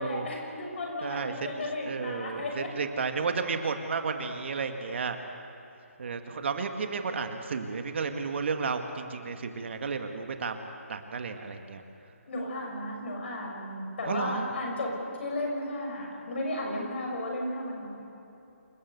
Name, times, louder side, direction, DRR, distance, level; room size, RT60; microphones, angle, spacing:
voice 1, 0.0-2.7 12.3-17.9, left 1 dB, 50° left, 0 dB, 6.6 m, -34 dB
voice 2, 1.0-1.5 1.9-5.2 6.0-11.8 14.1-14.5, right 5 dB, 50° right, 6 dB, 1.9 m, -32 dB
27.5 x 14.5 x 8.2 m, 3.0 s
figure-of-eight pair, 155°, 8 cm